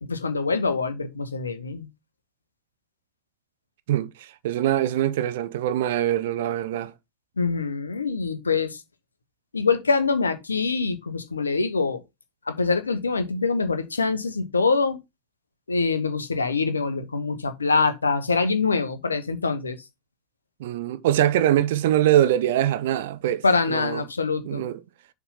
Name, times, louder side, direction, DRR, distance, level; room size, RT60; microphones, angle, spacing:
voice 1, 0.0-1.9 7.4-8.8 9.5-12.0 12.5-15.0 15.7-19.8 23.4-24.6, left 4 dB, 75° left, 1.1 m, -24 dB
voice 2, 3.9-6.9 20.6-24.0 24.4-24.8, right 12 dB, 55° right, 0.6 m, -23 dB
7.0 x 3.6 x 5.5 m
figure-of-eight pair, 90°, 0 cm